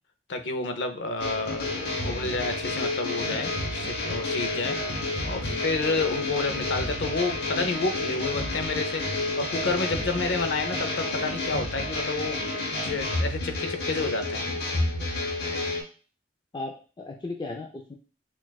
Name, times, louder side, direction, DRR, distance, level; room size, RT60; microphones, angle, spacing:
voice 1, 0.3-4.8 5.2-12.4 12.8-14.4, left 3 dB, 80° left, 8 dB, 0.5 m, -30 dB
sound 1, 1.2-15.8, left 2 dB, 65° left, 1.0 m, -30 dB
voice 2, 16.5-17.9, left 2 dB, 25° left, 1 dB, 0.3 m, -37 dB
6.0 x 2.4 x 2.3 m, 0.37 s
head